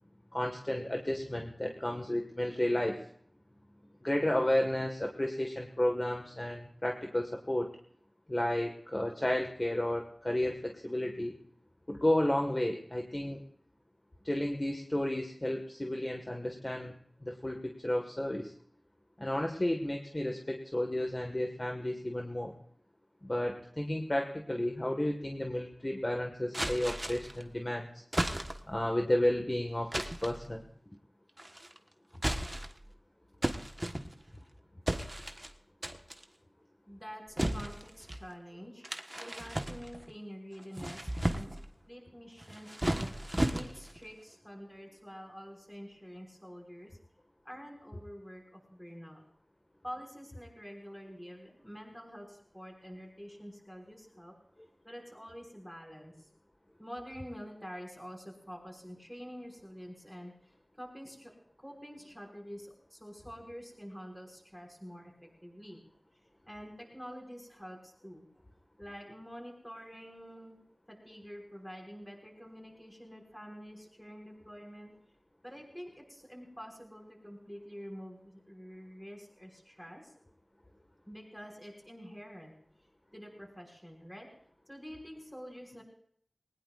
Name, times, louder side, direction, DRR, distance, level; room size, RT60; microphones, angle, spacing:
voice 1, 0.3-3.0 4.0-7.7 8.3-11.4 11.9-13.4 14.2-16.9 17.2-18.5 19.2-22.5 23.2-28.0 28.7-30.6, left 1 dB, 30° left, 2 dB, 1.7 m, -32 dB
sound 1, 26.5-27.4 28.1-28.8 29.9-30.4 31.4-31.8 32.1-32.9 33.4-34.4 34.9-35.5 35.8-36.2 37.4-38.2 38.8-40.1 40.6-41.7 42.4-44.0, right 1 dB, 20° right, 1.3 m, -34 dB
voice 2, 36.9-38.8 39.1-41.5 41.9-47.0 47.4-49.2 49.8-54.3 54.8-56.3 56.8-65.8 66.1-68.3 68.8-70.6 70.9-74.9 75.4-80.1 81.1-82.5 82.8-84.3 84.7-85.8, equal, 5° left, 0 dB, 6.0 m, -47 dB
21.5 x 19.5 x 2.5 m, 0.64 s
wide cardioid pair, 60°, 0 cm